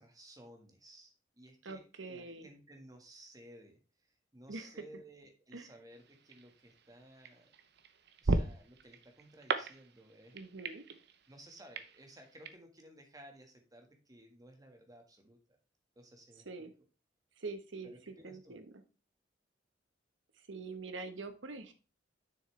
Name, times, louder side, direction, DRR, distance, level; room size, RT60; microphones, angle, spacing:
voice 1, 0.0-7.5 8.2-10.4 11.3-15.6 16.0-16.7 17.8-18.6, right 1 dB, 20° right, 4 dB, 1.6 m, -57 dB
voice 2, 1.6-2.5 4.5-4.8 5.5-5.7 10.3-10.8 16.5-16.7 17.4-17.9 18.2-18.7 20.5-21.7, right 3 dB, 90° right, 8 dB, 1.1 m, -44 dB
sound 1, 5.9-12.5, right 3 dB, 65° right, 0.8 m, -38 dB
7.2 x 6.4 x 3.3 m, 0.32 s
head